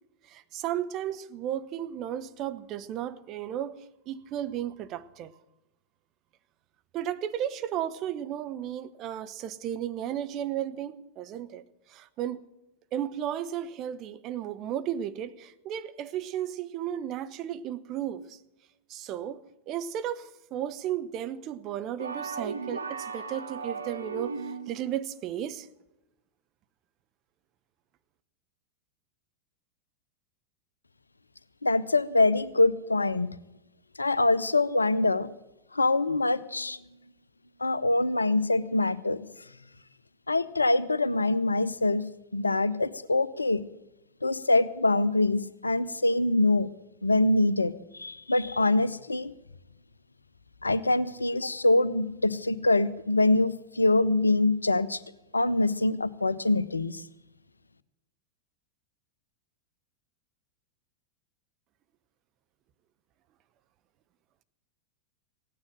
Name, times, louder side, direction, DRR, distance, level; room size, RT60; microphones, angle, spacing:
voice 1, 0.3-3.8 4.1-5.3 6.9-12.4 12.9-18.4 18.9-24.4 24.7-25.7, right 10 dB, 35° right, 0.8 m, -34 dB
sound 1, 22.0-24.9, right 5 dB, 75° right, 0.9 m, -36 dB
voice 2, 31.6-33.4 34.0-35.3 35.7-36.8 37.6-39.3 40.3-42.1 42.3-43.6 44.2-46.7 47.0-49.3 50.6-55.0 55.3-57.0, left 2 dB, 80° left, 0.6 m, -24 dB
16.0 x 9.7 x 7.4 m
figure-of-eight pair, 90°, 0 cm